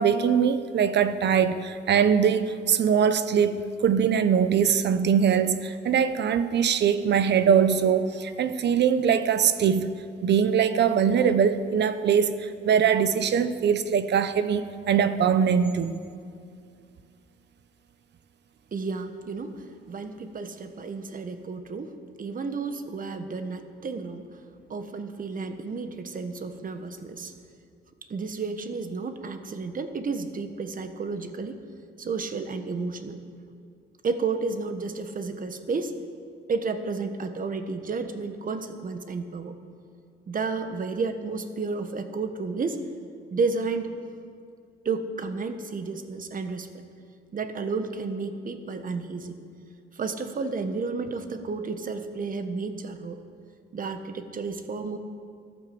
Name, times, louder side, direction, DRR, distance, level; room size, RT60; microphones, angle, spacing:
voice 1, 0.0-9.9 10.2-16.0, right 7 dB, 60° right, 12 dB, 0.9 m, -22 dB
voice 2, 18.7-21.9 22.2-24.3 24.7-27.3 28.1-31.6 32.0-33.2 34.0-35.9 36.5-39.5 40.3-42.8 43.3-43.9 44.8-46.7 47.3-49.3 49.9-53.2 53.7-55.0, right 4 dB, 45° right, 8 dB, 1.4 m, -31 dB
14.0 x 12.0 x 7.8 m, 2.3 s
cardioid pair, 90°, 20 cm